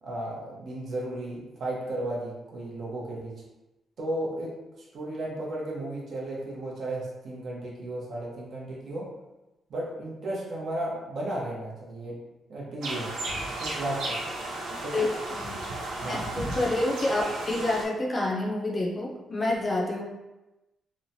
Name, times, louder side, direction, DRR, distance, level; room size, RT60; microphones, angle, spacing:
voice 1, 0.0-3.3 4.0-9.1 9.7-12.2 12.5-13.1 13.6-14.2 14.8-15.1 16.0-16.2, right 1 dB, 60° right, -3 dB, 0.8 m, -34 dB
sound 1, 12.8-17.8, right 2 dB, 90° right, 0.6 m, -34 dB
voice 2, 16.1-20.0, left 2 dB, 25° left, -2 dB, 0.5 m, -28 dB
3.1 x 2.1 x 2.6 m, 1.0 s
cardioid pair, 110°, 0 cm